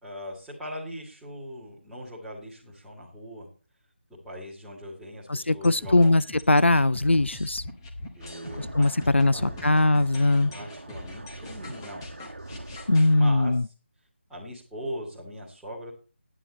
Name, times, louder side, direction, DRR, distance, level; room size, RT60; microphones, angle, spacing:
voice 1, 0.0-3.5 4.1-6.2 8.1-8.9 9.2-9.8 10.5-12.1 13.1-13.5 14.3-15.9, equal, 5° right, 2.4 m, -40 dB
voice 2, 5.3-6.2 6.5-7.6 8.6-10.5 12.9-13.6, left 2 dB, 75° left, 0.5 m, -21 dB
sound 1, 5.6-13.1, left 2 dB, 20° left, 1.7 m, -42 dB
sound 2, 8.2-13.3, right 2 dB, 70° right, 1.2 m, -43 dB
11.0 x 10.0 x 4.2 m
figure-of-eight pair, 155°, 6 cm